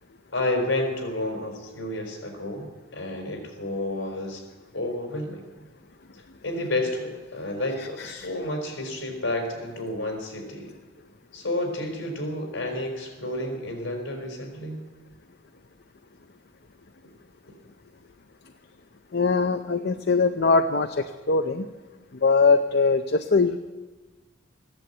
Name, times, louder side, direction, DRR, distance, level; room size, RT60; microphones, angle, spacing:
voice 1, 0.3-2.7 2.9-4.4 4.7-5.4 6.4-10.7 11.3-14.8, left 1 dB, 70° left, 2 dB, 4.3 m, -30 dB
voice 2, 19.1-21.7 22.2-23.6, left 4 dB, 55° left, 8 dB, 0.6 m, -21 dB
15.0 x 10.5 x 8.1 m, 1.2 s
head